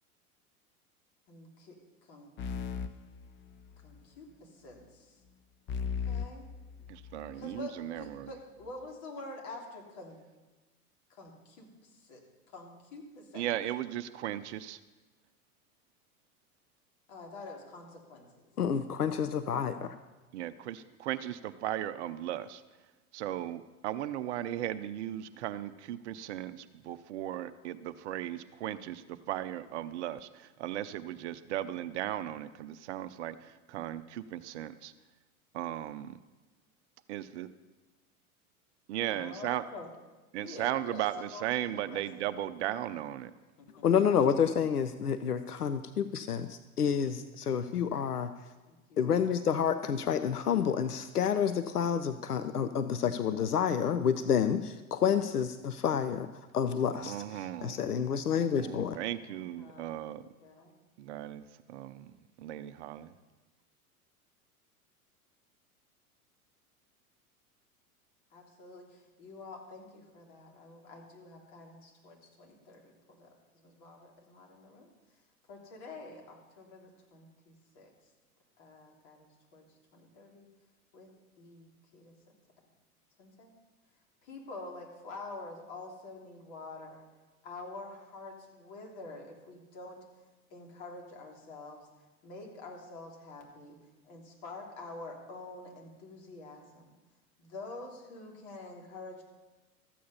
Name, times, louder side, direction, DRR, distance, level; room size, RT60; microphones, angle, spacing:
voice 1, 1.3-1.8 2.0-2.3 3.8-5.2 5.7-6.4 7.3-10.2 11.1-12.2 12.5-13.4 17.1-18.4 39.1-39.9 40.3-42.0 43.6-43.8 48.7-49.3 59.3-59.9 60.4-60.7 68.3-74.9 75.5-77.9 78.6-79.6 79.9-80.5 80.9-81.1 81.4-82.1 83.2-83.5 84.2-87.1 87.4-90.0 90.5-91.9 92.2-93.8 94.0-96.9 97.4-99.2, left 2 dB, 50° left, 0 dB, 3.2 m, -47 dB
sound 1, 2.4-4.0 5.7-7.4, left 6 dB, 25° left, 0.7 m, -37 dB
voice 2, 6.9-8.3 13.3-14.8 20.3-22.6 23.1-34.9 35.5-36.2 37.1-37.5 38.9-39.6 40.3-43.3 56.9-57.8 58.6-60.3 61.0-63.1, right 12 dB, 50° right, 13 dB, 0.7 m, -37 dB
voice 3, 18.6-20.0 43.8-48.3 49.0-56.3 56.5-57.2 57.6-59.0, left 7 dB, 85° left, 11 dB, 0.7 m, -29 dB
13.5 x 8.5 x 5.6 m, 1.2 s
figure-of-eight pair, 90°, 45 cm